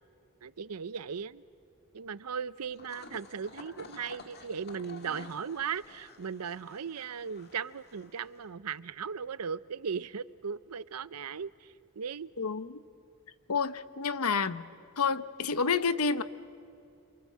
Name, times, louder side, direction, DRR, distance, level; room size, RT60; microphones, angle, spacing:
voice 1, 0.4-1.4 1.9-12.3, right 6 dB, 80° right, 17 dB, 0.6 m, -37 dB
sound 1, 2.7-8.5, left 4 dB, 45° left, 1.9 m, -51 dB
voice 2, 12.4-12.7 13.5-14.7 15.0-16.2, left 5 dB, 70° left, 13 dB, 0.9 m, -29 dB
28.0 x 27.0 x 7.5 m, 2.6 s
head